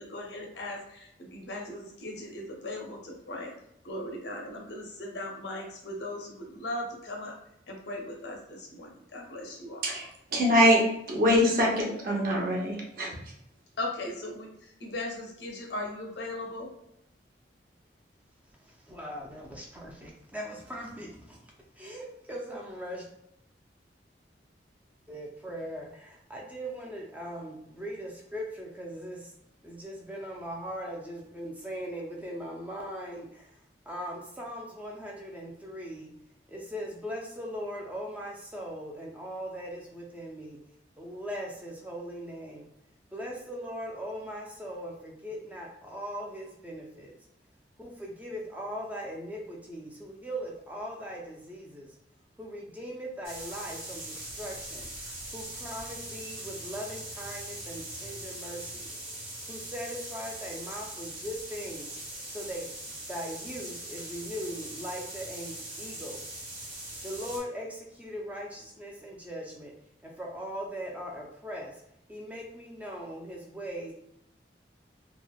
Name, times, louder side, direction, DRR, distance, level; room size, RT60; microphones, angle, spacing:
voice 1, 0.0-3.5 3.8-7.3 7.7-9.8 13.8-14.5 14.8-16.7, left 1 dB, 70° left, 0 dB, 0.6 m, -38 dB
voice 2, 9.8-10.8 11.1-13.1, equal, 50° right, -2 dB, 0.7 m, -24 dB
voice 3, 18.6-21.4 21.7-23.1 25.1-29.3 29.6-33.6 33.9-36.1 36.5-40.6 41.0-42.7 43.1-47.1 47.8-51.9 52.4-54.9 55.3-58.9 59.5-62.0 62.3-66.4 67.0-69.7 70.0-71.8 72.1-73.9, equal, 10° right, -2 dB, 0.3 m, -39 dB
sound 1, 53.2-67.4, right 1 dB, 30° right, 1.1 m, -41 dB
3.1 x 2.0 x 2.2 m, 0.77 s
head